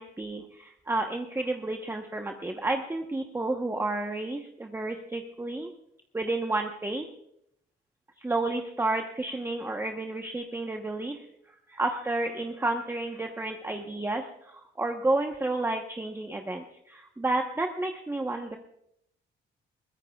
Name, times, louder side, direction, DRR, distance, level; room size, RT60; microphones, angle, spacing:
voice 1, 0.0-5.7 6.1-7.1 8.2-11.2 11.7-18.6, right 2 dB, 10° right, 3 dB, 1.1 m, -31 dB
22.5 x 16.0 x 2.4 m, 0.76 s
cardioid pair, 90°, 20 cm